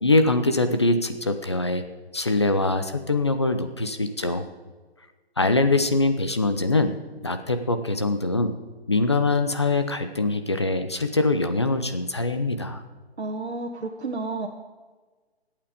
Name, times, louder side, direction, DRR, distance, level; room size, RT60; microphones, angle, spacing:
voice 1, 0.0-1.8 2.1-4.4 5.4-6.9 7.2-8.5 8.9-12.8, left 2 dB, 25° left, 8 dB, 0.6 m, -23 dB
voice 2, 13.2-14.5, right 3 dB, 85° right, 0 dB, 1.5 m, -31 dB
24.5 x 8.8 x 5.0 m, 1.3 s
hypercardioid pair, 175°, 32 cm